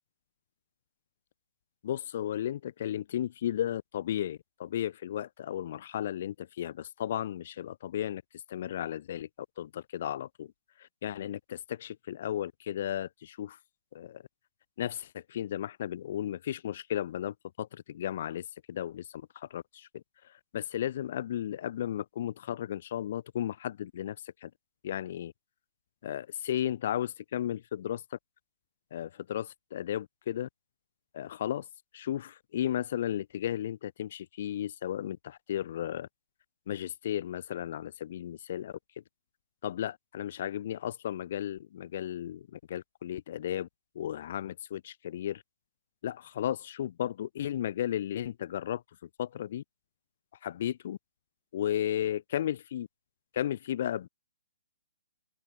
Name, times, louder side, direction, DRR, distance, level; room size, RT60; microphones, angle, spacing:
voice 1, 1.8-8.2 8.5-9.3 9.6-10.5 10.8-13.6 13.9-14.2 14.8-20.0 20.5-24.2 24.4-24.5 24.8-25.3 26.0-28.0 28.9-30.5 31.1-31.7 31.9-36.1 36.7-38.8 39.6-43.7 44.0-45.4 46.0-48.8 49.2-49.6 50.4-51.0 51.5-52.9 53.3-54.1, left 11 dB, 45° left, 0.3 m, -34 dB
open air
figure-of-eight pair, 130°, 0 cm